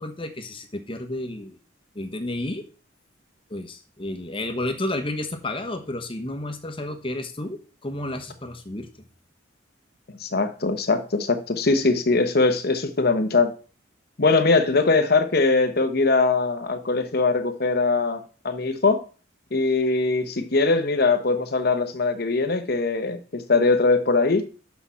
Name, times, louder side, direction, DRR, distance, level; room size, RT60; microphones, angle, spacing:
voice 1, 0.0-1.6 1.9-2.7 3.5-8.9, left 1 dB, 25° left, 1.0 m, -31 dB
voice 2, 10.2-13.5 14.2-19.0 19.5-24.4, left 3 dB, 50° left, 0.9 m, -21 dB
6.2 x 5.9 x 5.6 m
head